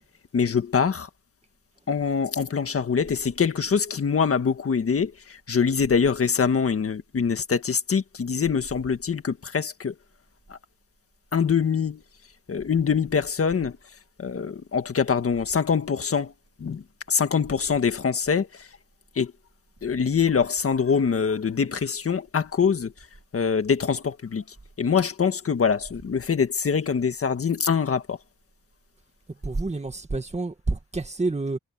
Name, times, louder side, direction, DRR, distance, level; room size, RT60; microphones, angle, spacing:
voice 1, 0.3-1.1 1.9-9.9 10.5-10.6 11.3-12.0 12.5-13.8 14.2-16.3 16.6-18.7 19.1-19.3 19.8-22.9 23.3-24.4 24.8-28.2, left 6 dB, 50° left, 1.7 m, -24 dB
voice 2, 29.3-31.6, right 3 dB, 20° right, 2.0 m, -28 dB
wide cardioid pair, 135°, 31 cm